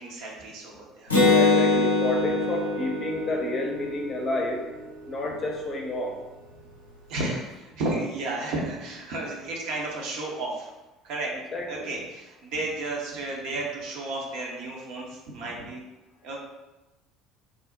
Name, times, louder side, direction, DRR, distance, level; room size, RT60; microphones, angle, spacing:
voice 1, 0.0-1.3 7.1-10.7 11.0-11.4 11.6-15.8 16.2-16.4, right 2 dB, 60° right, -2 dB, 0.7 m, -33 dB
Acoustic guitar, 1.1-4.8, left 3 dB, 90° left, 0.5 m, -23 dB
voice 2, 1.2-4.6 5.1-6.2 11.5-11.9, left 2 dB, 35° left, 1 dB, 0.6 m, -30 dB
2.5 x 2.1 x 3.5 m, 1.1 s
figure-of-eight pair, 60°, 0 cm